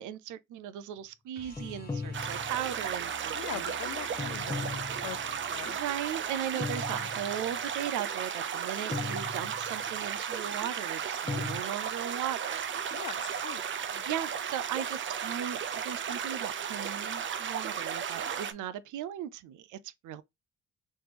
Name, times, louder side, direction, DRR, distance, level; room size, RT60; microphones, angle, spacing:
voice 1, 0.0-3.7 5.6-13.0 14.1-20.2, right 10 dB, 80° right, 0.5 m, -37 dB
sound 1, 1.3-7.3 9.8-9.9, left 2 dB, 30° left, 1.1 m, -53 dB
sound 2, 1.6-2.9 4.2-5.4 6.6-7.5 8.9-9.9 11.3-11.6, left 4 dB, 10° left, 0.3 m, -37 dB
sound 3, 2.1-18.5, right 7 dB, 40° right, 0.5 m, -35 dB
voice 2, 3.3-4.7 5.0-5.8 6.9-7.1 12.9-13.6 13.9-14.0, left 14 dB, 75° left, 0.6 m, -42 dB
3.5 x 3.2 x 2.8 m
cardioid pair, 90°, 30 cm